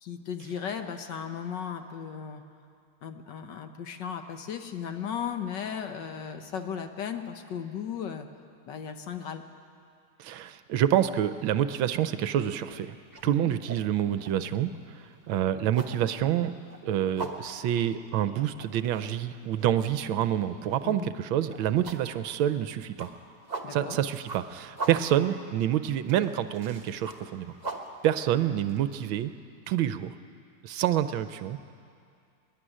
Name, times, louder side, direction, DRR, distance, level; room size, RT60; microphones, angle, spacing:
voice 1, 0.0-2.4 3.0-8.3 8.7-9.4 13.3-13.5 20.8-21.1 23.6-24.0, left 7 dB, 60° left, 7 dB, 1.5 m, -36 dB
voice 2, 10.2-13.0 13.2-16.5 16.8-23.1 23.7-27.5 28.0-29.3 29.7-30.1 30.6-31.6, right 11 dB, 75° right, 11 dB, 1.4 m, -27 dB
sound 1, 11.5-11.8 12.2-29.1, right 3 dB, 25° right, 1.1 m, -42 dB
24.0 x 11.0 x 10.0 m, 2.4 s
omnidirectional pair, 2.3 m